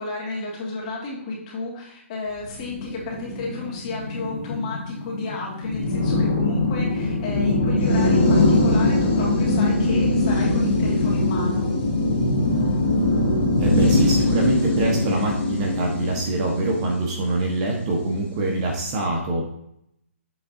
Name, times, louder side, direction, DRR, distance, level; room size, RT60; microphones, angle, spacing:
voice 1, 0.0-11.7, left 3 dB, 30° left, -3 dB, 2.2 m, -32 dB
sound 1, 2.4-17.9, left 2 dB, 50° left, 2.3 m, -22 dB
voice 2, 13.6-19.4, right 2 dB, 25° right, 0 dB, 1.2 m, -24 dB
7.3 x 6.8 x 2.7 m, 0.75 s
hypercardioid pair, 160°, 7 cm